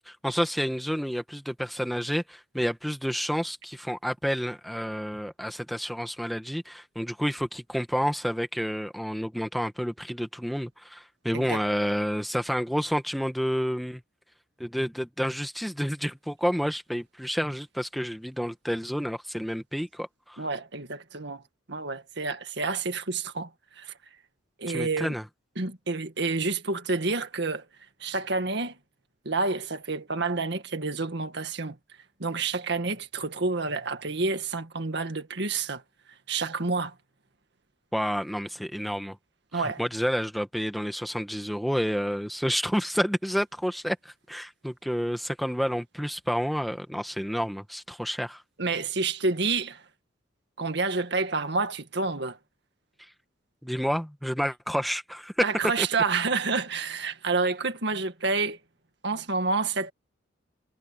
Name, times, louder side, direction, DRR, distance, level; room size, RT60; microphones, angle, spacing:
voice 1, 0.1-14.0 14.6-20.4 24.7-25.2 37.9-39.2 39.5-48.4 53.6-55.4 55.8-55.9, equal, ahead, 1.4 m, -29 dB
voice 2, 20.4-21.4 21.7-23.5 23.8-23.9 24.6-25.1 25.6-27.6 28.0-28.8 29.3-31.8 32.2-35.8 36.3-36.9 39.5-39.8 48.6-49.8 50.6-52.4 55.4-58.6 59.0-59.9, right 3 dB, 65° right, 2.0 m, -29 dB
head